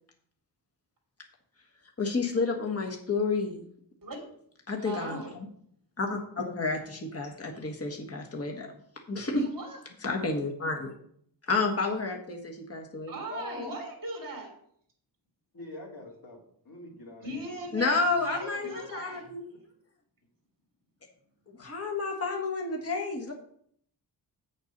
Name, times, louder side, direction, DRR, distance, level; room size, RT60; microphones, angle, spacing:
voice 1, 2.0-3.7 4.7-5.5 6.0-8.7 9.1-9.4 10.0-10.9 11.5-13.1 17.7-19.4 21.5-23.3, left 3 dB, 35° left, 1 dB, 1.5 m, -30 dB
voice 2, 4.8-5.3 9.3-9.8 13.0-14.5 17.2-19.3, right 1 dB, 50° right, 0 dB, 3.1 m, -38 dB
voice 3, 13.3-13.7 15.5-17.5 18.6-18.7, left 2 dB, 60° left, -1 dB, 2.7 m, -43 dB
8.1 x 6.8 x 5.3 m, 0.65 s
wide cardioid pair, 130°, 41 cm